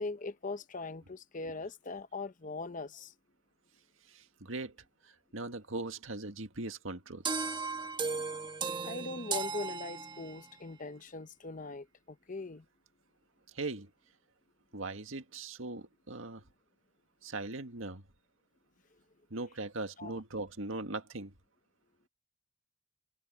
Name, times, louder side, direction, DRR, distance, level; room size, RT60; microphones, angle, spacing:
voice 1, 0.0-3.1 8.8-12.6 20.0-20.1, left 3 dB, 40° left, 0.9 m, -40 dB
voice 2, 4.1-4.8 5.0-7.2 13.5-13.9 14.7-16.4 17.2-18.0 19.3-21.3, right 2 dB, 80° right, 1.8 m, -40 dB
sound 1, 7.3-10.5, right 4 dB, 25° right, 1.3 m, -36 dB
head